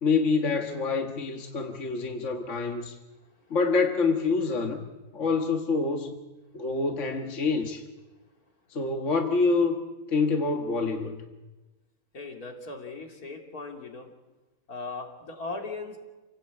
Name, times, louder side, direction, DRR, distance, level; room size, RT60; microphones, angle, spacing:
voice 1, 0.0-2.9 3.5-4.9 5.1-6.2 6.5-7.8 8.7-9.8 10.1-11.3, left 4 dB, 55° left, 4 dB, 1.9 m, -26 dB
voice 2, 12.1-14.1 14.7-16.0, left 3 dB, 80° left, 2 dB, 3.4 m, -38 dB
28.5 x 17.0 x 8.4 m, 1.2 s
omnidirectional pair, 1.6 m